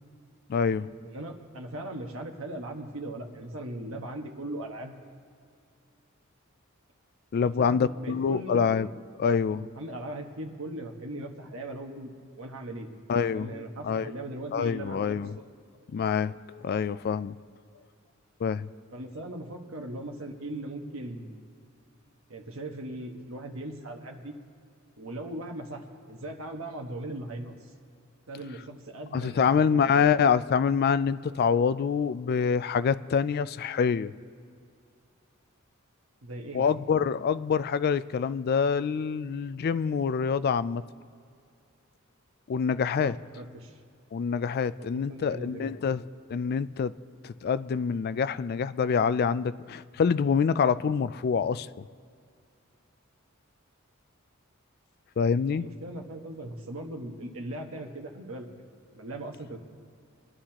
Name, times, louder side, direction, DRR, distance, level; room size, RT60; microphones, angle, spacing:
voice 1, 0.5-0.9 7.3-8.9 9.2-9.7 13.1-13.5 13.8-14.1 14.5-15.3 15.9-17.4 18.4-18.7 29.1-34.1 36.5-40.8 42.5-43.2 44.1-46.0 46.3-46.9 47.2-51.7 55.2-55.7, left 6 dB, 50° left, 15 dB, 0.3 m, -26 dB
voice 2, 1.0-5.0 7.4-8.6 9.5-12.1 12.4-12.9 13.3-15.2 18.9-21.3 22.3-24.3 25.0-27.7 28.3-30.1 36.2-36.9 43.0-43.8 44.8-45.7 55.5-58.5 59.0-59.6, right 1 dB, 70° right, 3 dB, 1.4 m, -39 dB
24.0 x 11.0 x 2.9 m, 2.4 s
head